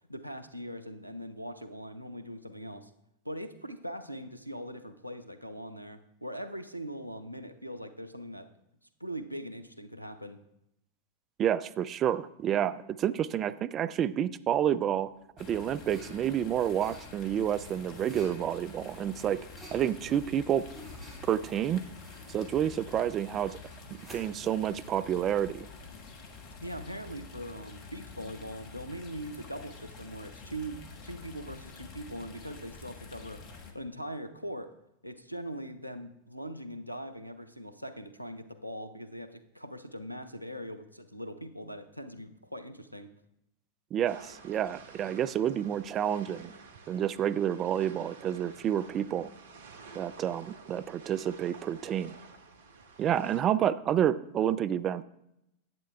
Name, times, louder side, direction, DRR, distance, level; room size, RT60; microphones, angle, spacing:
voice 1, 0.1-2.9 3.2-8.5 9.0-10.4 26.6-33.4 33.7-34.7 35.0-43.1, equal, 90° left, 10 dB, 0.6 m, -41 dB
voice 2, 11.4-15.1 15.4-19.4 19.7-20.7 21.2-21.8 22.3-23.6 24.1-25.7 43.9-46.5 46.9-49.3 49.9-52.1 53.0-55.0, right 10 dB, 30° right, 15 dB, 0.3 m, -29 dB
sound 1, 15.2-25.7, equal, 10° right, 3.8 m, -53 dB
sound 2, 15.4-33.7, left 4 dB, 40° left, 1.2 m, -48 dB
sound 3, 44.1-53.4, right 4 dB, 60° right, 0.9 m, -52 dB
10.5 x 8.5 x 3.4 m, 0.82 s
figure-of-eight pair, 90°, 0 cm